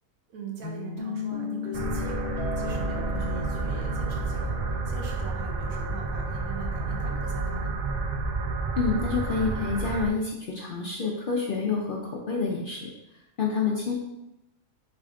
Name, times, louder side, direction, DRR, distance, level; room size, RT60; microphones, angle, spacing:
voice 1, 0.3-7.8, right 6 dB, 80° right, 0 dB, 1.3 m, -42 dB
sound 1, 0.6-6.3, left 5 dB, 15° left, 1.3 m, -36 dB
sound 2, 1.7-10.1, right 3 dB, 60° right, 0.6 m, -30 dB
voice 2, 8.8-12.9 13.4-13.9, left 4 dB, 60° left, -2 dB, 0.6 m, -28 dB
4.2 x 3.4 x 3.6 m, 0.91 s
omnidirectional pair, 1.4 m